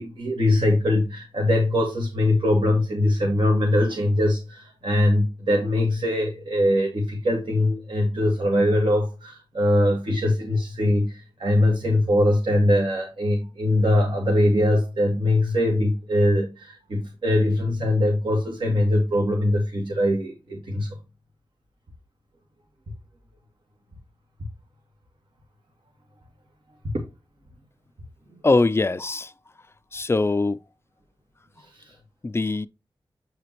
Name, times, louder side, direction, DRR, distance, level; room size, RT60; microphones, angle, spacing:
voice 1, 0.0-21.0 26.9-27.0 31.7-31.9, left 1 dB, 70° right, 2.0 m, -22 dB
voice 2, 28.4-29.3 29.9-30.6 32.2-32.7, left 3 dB, 30° left, 0.4 m, -22 dB
7.9 x 5.0 x 3.0 m
wide cardioid pair, 80°, 9 cm